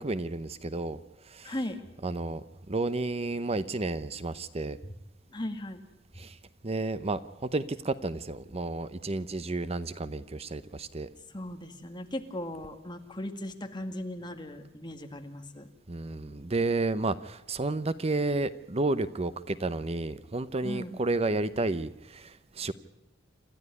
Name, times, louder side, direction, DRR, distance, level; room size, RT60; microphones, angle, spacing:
voice 1, 0.0-1.5 2.0-4.8 6.2-6.4 6.6-11.1 15.9-22.7, right 2 dB, 35° right, 14 dB, 0.8 m, -31 dB
voice 2, 1.4-1.8 5.3-5.8 11.3-15.7 20.6-21.0, left 1 dB, 25° left, 5 dB, 2.1 m, -37 dB
28.5 x 13.5 x 9.5 m, 0.95 s
head